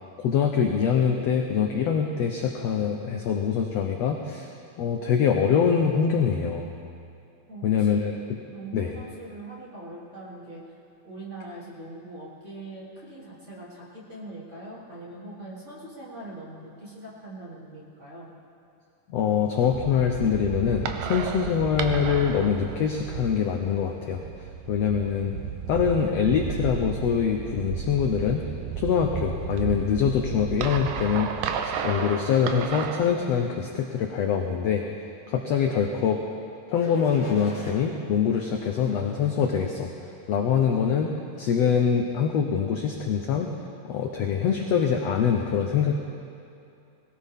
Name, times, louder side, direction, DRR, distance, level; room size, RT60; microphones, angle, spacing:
voice 1, 0.2-4.5 4.8-6.7 7.6-8.1 8.7-8.9 19.1-24.2 24.7-25.3 25.7-28.4 28.8-31.3 31.8-34.8 35.3-36.2 36.7-39.9 40.3-43.5 43.8-45.9, left 7 dB, 75° left, 2 dB, 1.5 m, -24 dB
voice 2, 7.5-8.1 8.5-10.6 11.0-18.3, right 2 dB, 20° right, -7 dB, 3.0 m, -42 dB
sound 1, 19.7-33.1, right 7 dB, 85° right, 2.5 m, -33 dB
sound 2, 35.8-36.2 36.7-37.8 38.3-39.4 40.0-40.3, left 2 dB, 30° left, 1.9 m, -46 dB
21.0 x 17.5 x 3.6 m, 2.6 s
omnidirectional pair, 4.0 m